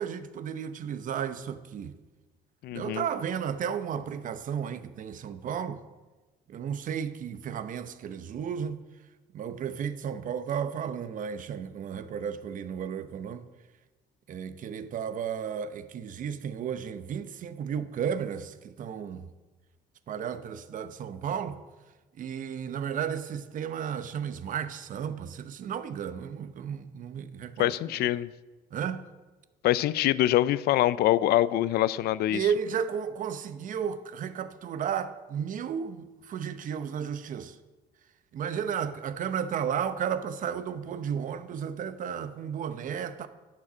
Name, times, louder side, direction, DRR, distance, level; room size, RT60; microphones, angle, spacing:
voice 1, 0.0-1.9 2.7-5.8 6.5-8.8 9.3-13.5 14.3-19.3 20.1-21.6 22.2-28.1 28.7-29.1 32.3-37.6 38.3-43.3, right 8 dB, 50° right, 0.8 m, -33 dB
voice 2, 2.6-3.0 27.6-28.3 29.6-32.4, left 14 dB, 70° left, 0.5 m, -24 dB
10.5 x 7.5 x 6.1 m
cardioid pair, 110°, 17 cm